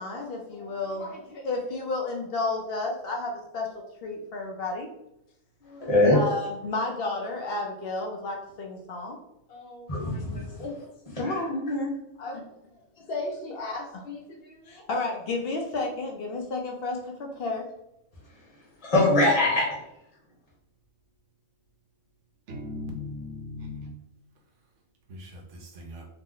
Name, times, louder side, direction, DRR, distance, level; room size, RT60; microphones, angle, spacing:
voice 1, 0.0-3.7 4.0-4.9 5.6-9.2 9.5-10.2 10.6-10.8 11.2-12.4 13.0-17.7, left 2 dB, 65° left, 0.6 m, -32 dB
voice 2, 5.8-6.2 9.9-10.6 11.2-11.3 18.8-19.7, left 2 dB, 30° left, 0.9 m, -22 dB
voice 3, 22.5-24.0 25.1-26.1, left 2 dB, 70° right, 0.9 m, -38 dB
2.8 x 2.0 x 3.7 m
omnidirectional pair, 1.4 m